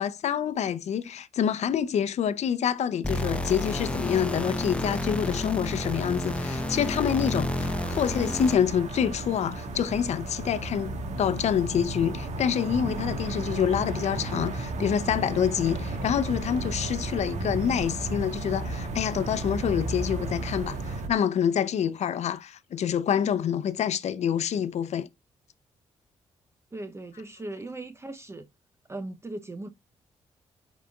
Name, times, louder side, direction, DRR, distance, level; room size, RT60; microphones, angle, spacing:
voice 1, 0.0-25.1, left 8 dB, 70° left, 0.7 m, -27 dB
sound 1, 3.0-8.8, left 1 dB, 10° left, 1.0 m, -31 dB
sound 2, 3.1-21.1, right 2 dB, 80° right, 1.5 m, -35 dB
sound 3, 15.7-21.1, right 4 dB, 60° right, 2.7 m, -40 dB
voice 2, 26.7-28.5 28.9-29.7, right 2 dB, 20° right, 0.8 m, -38 dB
9.9 x 4.1 x 2.4 m
supercardioid pair, 60°, 12 cm